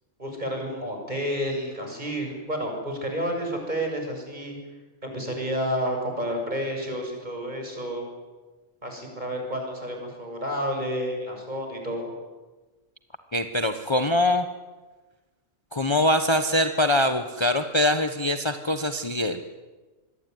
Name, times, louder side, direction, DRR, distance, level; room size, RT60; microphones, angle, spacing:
voice 1, 0.2-4.6 5.0-8.0 8.8-12.1, equal, 35° right, 2 dB, 7.3 m, -30 dB
voice 2, 13.3-14.4 15.7-19.5, left 1 dB, 20° left, 7 dB, 1.2 m, -23 dB
27.5 x 21.5 x 9.6 m, 1.2 s
omnidirectional pair, 1.3 m